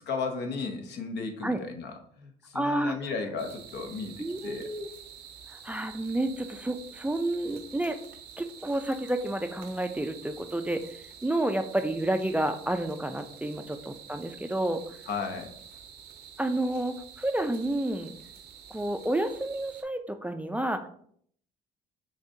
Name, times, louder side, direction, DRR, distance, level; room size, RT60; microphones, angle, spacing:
voice 1, 0.1-4.7 15.1-15.5, left 4 dB, 65° left, 5 dB, 0.8 m, -35 dB
voice 2, 2.5-3.0 4.2-4.9 5.5-8.0 8.4-15.0 16.4-18.1 18.7-20.9, right 1 dB, 10° right, 7 dB, 0.4 m, -30 dB
sound 1, 3.4-19.8, right 8 dB, 60° right, 0.7 m, -48 dB
6.0 x 2.7 x 2.7 m, 0.62 s
hypercardioid pair, 60°, 19 cm